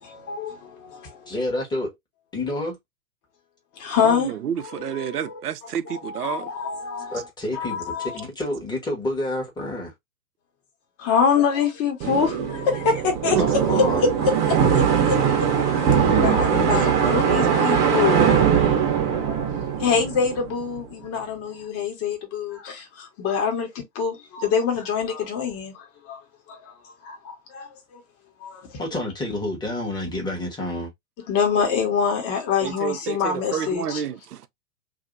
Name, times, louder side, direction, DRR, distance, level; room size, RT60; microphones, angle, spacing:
voice 1, 0.0-1.3 3.8-5.4 5.8-7.2 7.5-8.2 11.0-13.4 13.7-14.1 14.5-15.1 16.1-18.8 19.1-19.5 19.8-26.2 26.5-26.7 27.0-28.0 28.4-28.8 31.3-34.0, left 6 dB, 30° left, 1.3 m, -26 dB
voice 2, 1.3-1.9 2.3-2.8 7.1-7.8 8.1-9.9 13.4-14.0 16.2-17.2 28.8-30.9, left 1 dB, 10° left, 1.1 m, -29 dB
voice 3, 4.0-6.5 13.3-13.5 32.6-34.5, right 9 dB, 85° right, 0.6 m, -29 dB
sound 1, 12.0-20.8, right 7 dB, 25° right, 0.8 m, -21 dB
2.9 x 2.7 x 2.5 m
hypercardioid pair, 120°, 46 cm